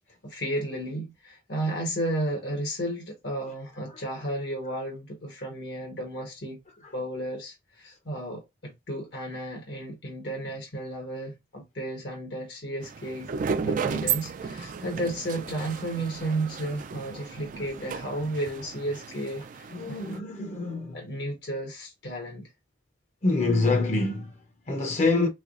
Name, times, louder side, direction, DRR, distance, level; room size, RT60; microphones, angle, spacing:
voice 1, 0.2-6.6 6.9-13.3 13.6-20.1 20.9-22.5, right 1 dB, 65° left, 1.0 m, -33 dB
sound 1, 12.8-20.2, right 6 dB, 45° right, 0.3 m, -34 dB
voice 2, 13.5-14.1 14.6-15.0 17.1-17.9 19.7-21.1 23.2-25.3, left 3 dB, 40° left, 0.7 m, -28 dB
3.3 x 3.2 x 2.4 m
head